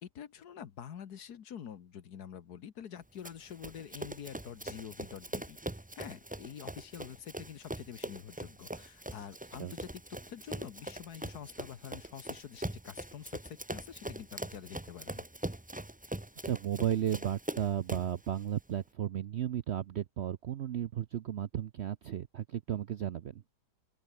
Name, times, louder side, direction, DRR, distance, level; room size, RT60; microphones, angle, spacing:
voice 1, 0.0-5.6 6.0-10.0 10.3-15.3, left 8 dB, 70° left, 1.7 m, -46 dB
Run, 3.2-18.2, right 1 dB, 10° right, 0.5 m, -42 dB
voice 2, 16.4-23.4, right 10 dB, 65° right, 0.7 m, -34 dB
open air
omnidirectional pair, 1.8 m